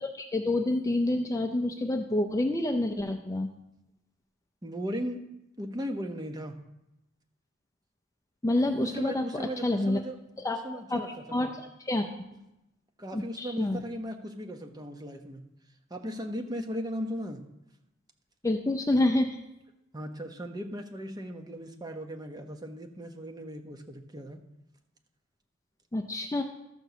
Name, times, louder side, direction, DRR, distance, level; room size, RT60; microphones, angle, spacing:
voice 1, 0.0-3.5 8.4-10.0 10.4-10.6 10.9-11.1 11.3-11.5 11.9-12.1 13.1-13.8 18.4-19.4 25.9-26.4, left 1 dB, 15° left, 4 dB, 0.5 m, -28 dB
voice 2, 4.6-5.2 5.6-6.6 8.8-10.2 10.5-11.5 13.0-15.4 15.9-17.4 19.9-24.4, equal, 20° right, 4 dB, 0.9 m, -37 dB
13.0 x 4.6 x 6.8 m, 0.87 s
head